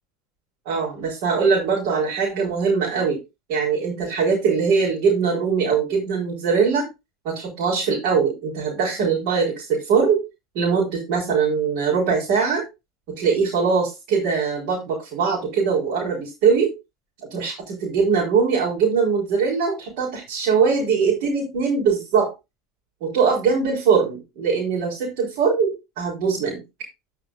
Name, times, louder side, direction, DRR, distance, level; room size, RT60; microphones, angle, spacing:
voice 1, 0.7-3.2 3.5-6.9 7.2-10.2 10.5-12.6 13.2-16.7 17.3-22.3 23.0-26.6, right 5 dB, 60° right, -5 dB, 4.4 m, -21 dB
13.0 x 5.8 x 2.7 m, 0.25 s
hypercardioid pair, 75°, 0 cm